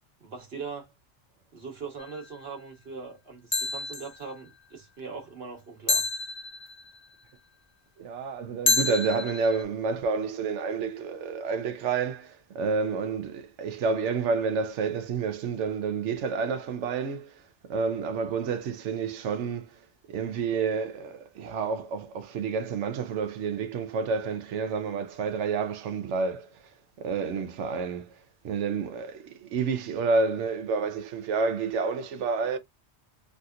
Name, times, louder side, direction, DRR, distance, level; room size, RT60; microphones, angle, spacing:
voice 1, 0.2-0.9 1.5-6.0, right 5 dB, 60° right, 1.4 m, -40 dB
sound 1, 2.0-2.3 3.5-4.2 5.9-7.0 8.7-9.6, left 3 dB, 30° left, 0.5 m, -28 dB
voice 2, 8.0-17.4 17.7-19.7 20.1-26.5 27.0-28.1 28.4-32.6, right 5 dB, 80° right, 1.0 m, -29 dB
3.3 x 2.7 x 2.4 m
omnidirectional pair, 1.2 m